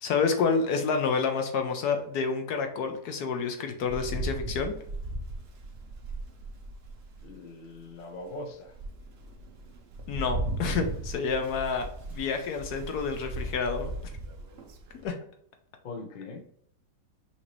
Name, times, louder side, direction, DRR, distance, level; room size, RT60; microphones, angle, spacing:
voice 1, 0.0-4.7 10.1-11.9 12.1-13.9 15.0-15.2, left 5 dB, 70° left, 5 dB, 1.1 m, -28 dB
Rain, 3.8-7.4 7.9-8.0 8.5-15.1, right 2 dB, 55° right, 0.7 m, -37 dB
voice 2, 7.2-8.7 15.8-16.4, left 2 dB, 45° left, 3 dB, 0.7 m, -41 dB
5.8 x 2.7 x 3.1 m, 0.67 s
omnidirectional pair, 1.9 m